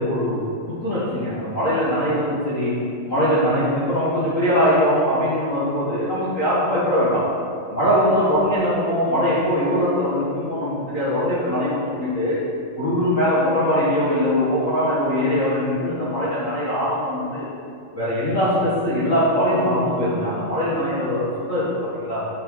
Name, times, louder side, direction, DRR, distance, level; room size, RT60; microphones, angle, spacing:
voice 1, 0.0-2.8 3.1-7.4 7.7-12.4 12.8-17.4 17.9-22.3, equal, 35° left, -9 dB, 1.3 m, -21 dB
9.9 x 7.8 x 4.0 m, 2.6 s
omnidirectional pair, 3.7 m